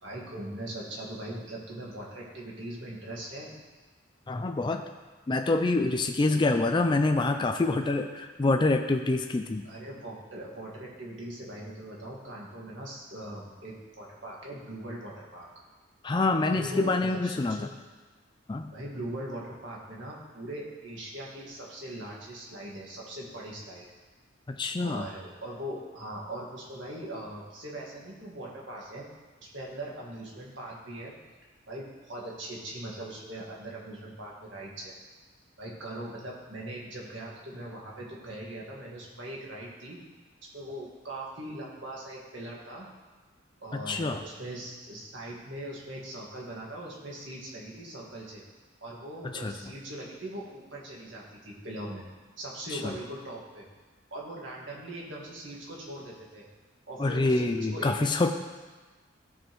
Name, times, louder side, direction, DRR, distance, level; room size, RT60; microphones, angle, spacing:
voice 1, 0.0-3.5 6.3-6.4 9.6-15.5 16.5-17.7 18.7-23.8 24.8-29.0 29.4-31.1 31.7-34.9 35.6-40.0 40.5-42.9 43.6-48.4 48.8-52.1 52.4-53.7 54.1-56.4 56.9-58.3, right 1 dB, 65° right, -3 dB, 1.7 m, -40 dB
voice 2, 4.3-4.9 5.3-9.7 16.0-17.7 18.5-18.7 24.5-25.1 43.7-44.2 49.3-49.7 52.7-52.9 57.0-58.3, left 2 dB, 25° left, 5 dB, 0.3 m, -26 dB
13.5 x 5.1 x 3.1 m, 1.3 s
head